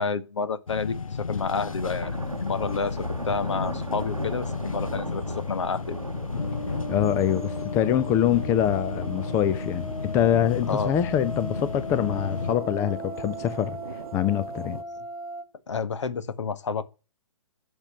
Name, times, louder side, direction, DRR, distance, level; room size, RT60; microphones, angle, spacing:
voice 1, 0.0-2.2 2.4-3.0 3.2-6.0 10.7-10.9 15.7-16.8, left 5 dB, 55° left, 1.6 m, -29 dB
sound 1, 0.7-12.6, left 5 dB, 75° left, 0.8 m, -33 dB
sound 2, 1.4-14.8, right 2 dB, 85° right, 1.0 m, -40 dB
sound 3, 6.4-15.4, right 1 dB, 5° right, 1.8 m, -38 dB
voice 2, 6.9-14.8, left 11 dB, 15° left, 0.6 m, -25 dB
11.5 x 7.1 x 9.0 m
figure-of-eight pair, 130°, 18 cm